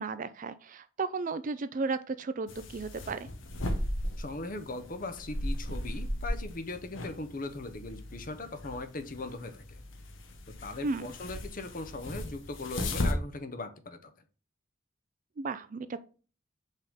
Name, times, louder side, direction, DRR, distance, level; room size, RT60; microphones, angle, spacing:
voice 1, 0.0-3.3 10.8-11.1 15.4-16.0, right 4 dB, 40° right, 13 dB, 0.4 m, -34 dB
sound 1, 2.5-13.1, left 1 dB, 65° left, 1.0 m, -36 dB
voice 2, 4.2-9.8 10.6-14.1, left 2 dB, 40° left, 8 dB, 0.8 m, -39 dB
5.4 x 3.6 x 5.6 m, 0.38 s
head